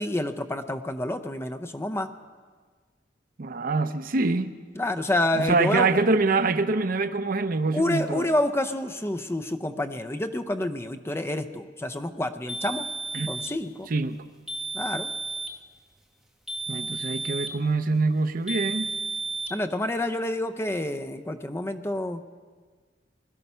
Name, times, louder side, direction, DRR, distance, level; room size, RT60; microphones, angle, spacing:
voice 1, 0.0-2.1 4.8-5.9 7.7-12.8 13.3-13.9 14.7-15.1 19.5-22.2, left 1 dB, 15° left, 8 dB, 0.6 m, -28 dB
voice 2, 3.4-4.5 5.4-8.2 13.1-13.3 13.9-14.2 16.7-18.9, right 3 dB, 50° right, 11 dB, 0.7 m, -25 dB
sound 1, 12.5-13.6 14.5-15.6 16.5-17.6 18.5-19.5, right 3 dB, ahead, 1.2 m, -33 dB
20.5 x 12.5 x 5.6 m, 1.5 s
head